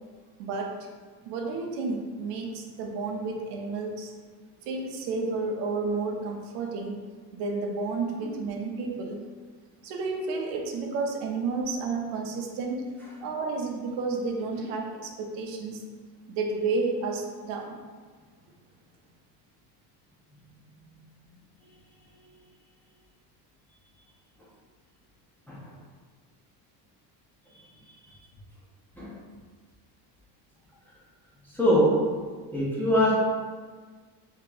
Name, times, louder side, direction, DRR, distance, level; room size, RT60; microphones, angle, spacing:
voice 1, 0.4-0.7 1.2-4.1 4.6-7.0 7.3-9.2 9.8-12.9 13.2-15.9 16.3-17.8, right 3 dB, 80° right, 1 dB, 0.7 m, -31 dB
voice 2, 27.5-28.1 29.0-29.1 30.8-30.9 31.5-31.9 32.5-33.1, equal, 5° left, -8 dB, 0.5 m, -25 dB
2.9 x 2.8 x 3.8 m, 1.5 s
cardioid pair, 170°, 41 cm